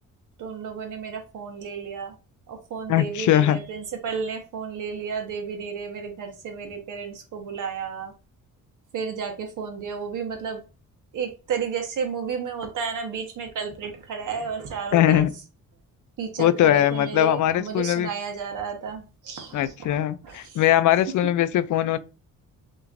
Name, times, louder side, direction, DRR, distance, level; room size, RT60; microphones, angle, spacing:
voice 1, 0.4-2.2 2.5-8.1 8.9-10.6 11.1-15.2 16.2-20.0 20.2-20.6, right 6 dB, 70° right, 1.3 m, -32 dB
voice 2, 2.9-3.6 14.9-15.3 16.4-18.1 19.5-22.0, left 12 dB, 70° left, 0.5 m, -20 dB
5.7 x 3.0 x 2.5 m
cardioid pair, 135°, 32 cm